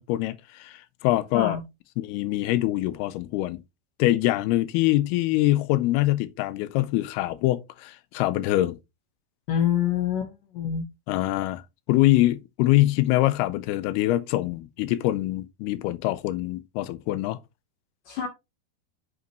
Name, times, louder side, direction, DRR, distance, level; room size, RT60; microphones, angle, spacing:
voice 1, 0.0-1.6 2.0-3.6 4.0-8.8 11.1-11.6 11.9-17.4, left 16 dB, 85° left, 2.5 m, -24 dB
voice 2, 9.5-10.9 18.1-18.3, left 9 dB, 65° left, 2.6 m, -26 dB
8.2 x 5.0 x 3.0 m
omnidirectional pair, 4.6 m